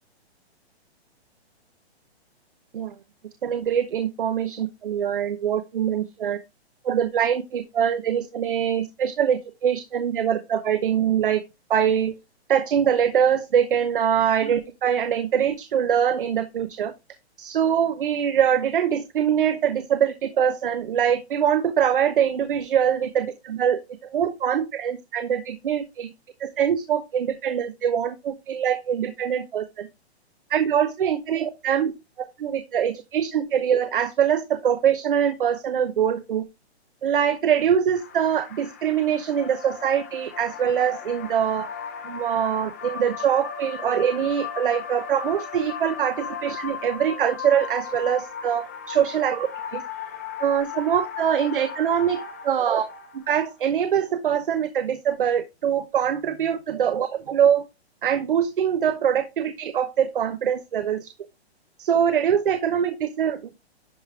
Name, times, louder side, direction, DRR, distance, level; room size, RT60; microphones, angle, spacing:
voice 1, 3.4-6.4 6.8-11.4 11.7-12.1 12.5-16.9 17.4-23.8 24.1-26.1 26.4-29.9 30.5-31.9 32.4-36.4 37.0-41.7 42.0-49.5 49.7-49.8 50.4-52.8 53.3-57.6 58.0-61.1 61.8-63.5, right 8 dB, 50° right, 10 dB, 0.9 m, -23 dB
sound 1, 37.9-53.7, left 7 dB, 15° left, 0.6 m, -37 dB
11.0 x 5.2 x 3.3 m, 0.24 s
hypercardioid pair, 175°, 33 cm